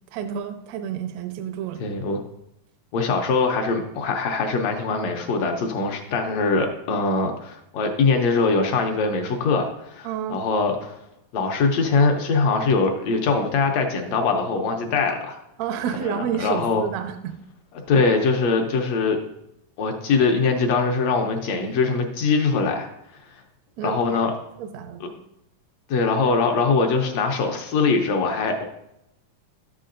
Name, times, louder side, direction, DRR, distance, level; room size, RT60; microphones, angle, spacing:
voice 1, 0.1-1.8 10.0-10.4 15.6-17.4 23.8-24.2 24.6-25.2, right 8 dB, 75° right, 7 dB, 1.6 m, -30 dB
voice 2, 1.8-2.2 2.9-11.0 11.3-15.4 16.0-16.8 17.9-19.2 19.8-22.9 23.8-24.3 25.0-25.1 25.9-28.6, left 4 dB, 70° left, 4 dB, 1.7 m, -22 dB
12.0 x 8.4 x 2.6 m, 0.83 s
omnidirectional pair, 4.0 m